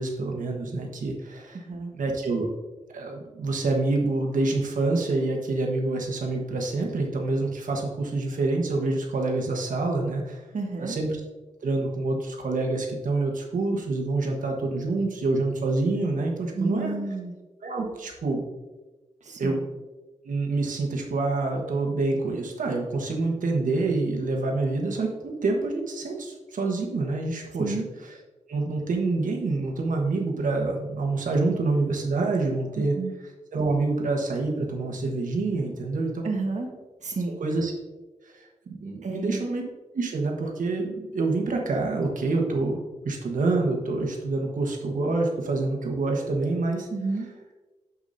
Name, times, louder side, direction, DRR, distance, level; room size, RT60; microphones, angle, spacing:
voice 1, 0.0-1.6 1.9-2.5 2.9-10.4 10.8-11.2 11.6-17.0 17.6-18.4 19.4-19.6 20.2-27.8 28.5-33.0 33.5-36.3 37.4-37.7 38.3-39.6 39.9-46.9, right 3 dB, 85° right, 1 dB, 1.2 m, -27 dB
voice 2, 1.5-1.9 10.5-11.0 16.5-17.3 19.2-19.6 27.6-27.8 32.8-33.1 36.2-36.7 37.0-37.4 39.0-39.4 46.9-47.3, right 3 dB, 65° right, 3 dB, 1.3 m, -30 dB
8.2 x 7.2 x 2.7 m, 1.2 s
cardioid pair, 65°, 13 cm